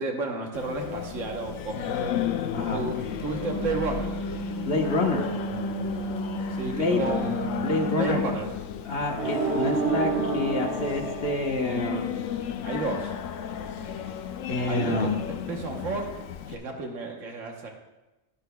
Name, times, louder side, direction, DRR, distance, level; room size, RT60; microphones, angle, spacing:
voice 1, 0.0-2.1 2.7-4.1 6.5-7.4 7.9-8.5 12.6-13.1 14.7-15.1 15.5-16.1 16.5-17.7, right 3 dB, 80° right, 1 dB, 1.5 m, -32 dB
Singing, 0.5-16.6, left 9 dB, 80° left, 1.0 m, -33 dB
voice 2, 2.5-2.8 4.6-5.3 6.6-7.0 7.6-8.2 8.8-12.1 14.5-15.2, left 2 dB, 55° left, 2 dB, 1.4 m, -27 dB
Wind instrument woodwind instrument, 3.2-8.5, right 2 dB, 20° left, 0.7 m, -33 dB
sound 1, 9.2-12.2, right 5 dB, 55° right, 1.5 m, -28 dB
14.0 x 10.0 x 2.3 m, 1.0 s
omnidirectional pair, 1.3 m